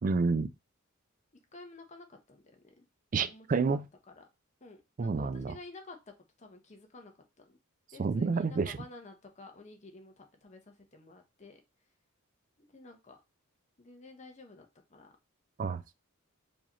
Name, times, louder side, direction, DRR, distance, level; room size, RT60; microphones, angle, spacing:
voice 1, 0.0-0.5 3.1-3.9 5.0-5.5 8.0-8.8 15.6-15.9, right 4 dB, 40° right, 0.3 m, -29 dB
voice 2, 1.5-2.8 3.3-3.8 4.1-4.3 4.6-6.1 6.4-7.6 7.9-11.6 12.6-13.2 13.8-15.1, left 2 dB, 30° left, 0.8 m, -52 dB
4.7 x 2.9 x 2.9 m
head